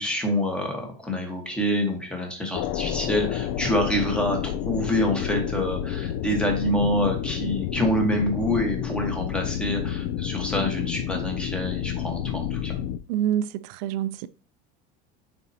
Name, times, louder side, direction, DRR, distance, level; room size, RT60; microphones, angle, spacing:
voice 1, 0.0-12.8, left 1 dB, 5° left, 1.2 m, -26 dB
sound 1, 2.5-13.0, left 10 dB, 55° left, 0.4 m, -30 dB
voice 2, 13.1-14.3, right 11 dB, 75° right, 0.5 m, -26 dB
8.9 x 4.3 x 2.8 m
cardioid pair, 165°, 21 cm